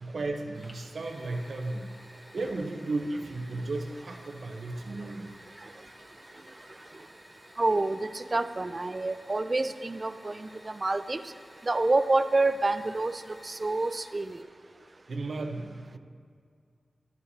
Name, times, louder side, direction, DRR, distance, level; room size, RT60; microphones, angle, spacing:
voice 1, 0.0-1.9 2.3-5.3 15.1-16.0, right 2 dB, 65° right, 3 dB, 0.9 m, -34 dB
Fire, 0.5-14.4, left 1 dB, 20° left, 1.1 m, -54 dB
voice 2, 7.6-11.3 11.6-14.4, right 2 dB, 30° right, 11 dB, 0.3 m, -28 dB
12.0 x 9.5 x 2.8 m, 2.2 s
wide cardioid pair, 110°, 0 cm